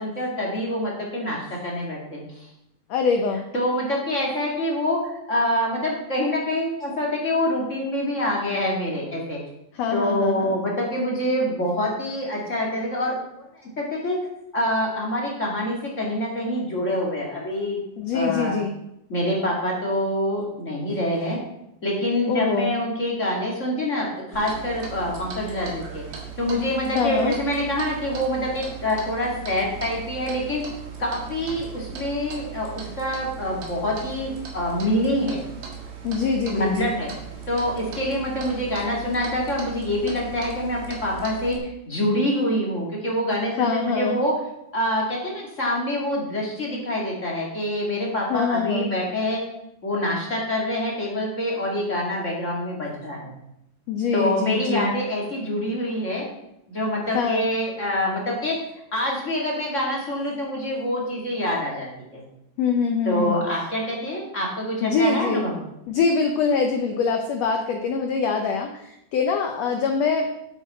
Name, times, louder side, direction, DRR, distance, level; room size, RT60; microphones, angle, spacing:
voice 1, 0.0-2.5 3.5-9.4 9.9-14.2 14.5-17.8 18.1-18.6 19.1-21.4 21.8-24.1 24.3-26.0 26.4-30.6 31.0-35.4 36.5-37.1 37.5-44.4 44.7-49.4 49.8-53.3 54.1-56.2 56.7-58.6 58.9-62.2 63.1-65.6, left 1 dB, 25° left, -3 dB, 1.9 m, -26 dB
voice 2, 2.9-3.4 9.8-10.6 18.0-18.8 22.3-22.7 26.9-27.3 36.0-36.9 43.6-44.2 48.3-48.9 53.9-55.0 57.1-57.5 62.6-63.4 64.8-65.5 65.9-68.7 69.1-70.3, left 5 dB, 85° left, 4 dB, 1.5 m, -24 dB
Clock, 24.3-41.6, right 6 dB, 80° right, 3.6 m, -38 dB
10.5 x 8.2 x 4.2 m, 0.82 s
omnidirectional pair, 4.1 m